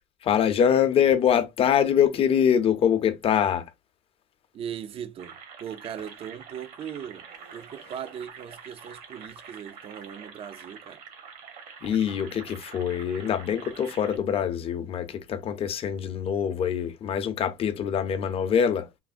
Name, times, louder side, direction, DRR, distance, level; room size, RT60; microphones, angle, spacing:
voice 1, 0.2-3.7 11.8-18.9, left 8 dB, 35° left, 0.5 m, -24 dB
voice 2, 4.5-7.3 7.5-11.0, right 9 dB, 35° right, 0.4 m, -39 dB
sound 1, 5.2-14.2, right 6 dB, 55° right, 1.0 m, -46 dB
3.2 x 2.0 x 2.4 m
cardioid pair, 140°, 16 cm